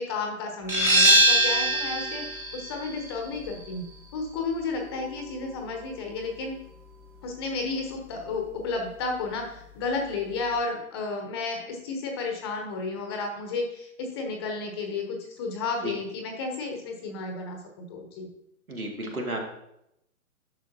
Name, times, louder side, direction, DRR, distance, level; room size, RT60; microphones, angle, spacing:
voice 1, 0.0-3.9 4.1-6.5 7.2-18.3, left 3 dB, 20° left, 3 dB, 0.8 m, -32 dB
sound 1, 0.7-6.1, equal, 5° right, 1.0 m, -24 dB
voice 2, 18.7-19.4, right 1 dB, 80° right, 1 dB, 2.3 m, -32 dB
11.0 x 6.3 x 2.8 m, 0.81 s
figure-of-eight pair, 130°, 42 cm